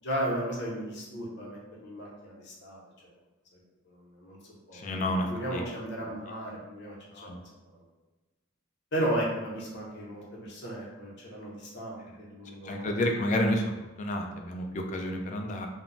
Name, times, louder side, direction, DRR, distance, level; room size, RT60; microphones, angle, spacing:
voice 1, 0.0-2.8 3.9-4.4 4.7-6.9 7.2-7.4 7.7-7.8 8.9-12.9, right 1 dB, 60° left, -4 dB, 0.7 m, -35 dB
voice 2, 4.7-5.6 7.1-7.4 12.6-13.7 14.0-15.7, left 1 dB, 40° left, 3 dB, 0.3 m, -30 dB
2.1 x 2.0 x 3.7 m, 1.2 s
head